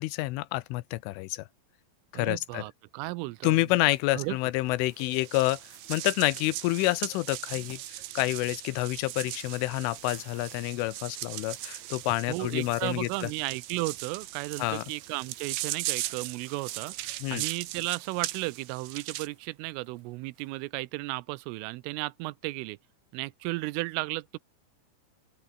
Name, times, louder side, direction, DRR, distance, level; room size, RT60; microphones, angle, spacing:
voice 1, 0.0-1.4 2.1-2.6 3.4-5.6 5.9-7.8 8.2-13.3 14.6-14.8 17.2-17.4, left 19 dB, 80° left, 3.3 m, -28 dB
voice 2, 2.1-3.6 4.1-4.4 12.3-16.9 17.3-22.8 23.1-24.4, right 21 dB, 90° right, 3.3 m, -34 dB
sound 1, 3.0-20.8, right 6 dB, 40° right, 4.3 m, -56 dB
sound 2, 5.0-19.3, right 16 dB, 70° right, 2.6 m, -39 dB
open air
omnidirectional pair, 5.6 m